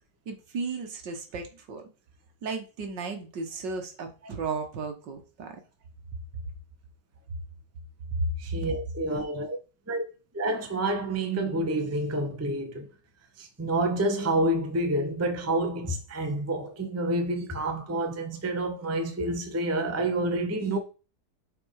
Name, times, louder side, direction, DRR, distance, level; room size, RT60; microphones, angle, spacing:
voice 1, 0.3-1.8 2.4-5.6 8.1-8.6, right 3 dB, 75° right, 2.0 m, -34 dB
voice 2, 8.4-9.6 9.9-10.0 10.3-12.9 13.4-20.8, right 1 dB, 15° right, 0.6 m, -28 dB
5.8 x 4.3 x 4.7 m
omnidirectional pair, 2.0 m